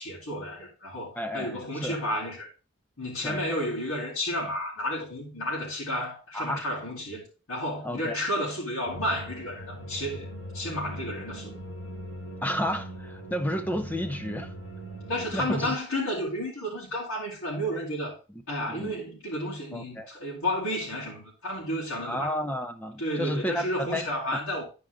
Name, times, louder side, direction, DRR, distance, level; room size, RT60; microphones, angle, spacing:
voice 1, 0.0-2.5 3.0-10.3 10.5-11.6 15.1-18.1 18.5-22.3 23.0-24.6, equal, 85° left, 3.5 m, -32 dB
voice 2, 1.1-2.0 3.2-3.4 6.3-6.7 7.8-8.2 12.4-14.5 15.3-15.8 18.7-18.9 19.7-20.1 22.0-24.4, equal, 10° left, 0.6 m, -32 dB
sound 1, 8.9-15.6, equal, 55° left, 3.3 m, -40 dB
11.0 x 5.1 x 3.5 m
head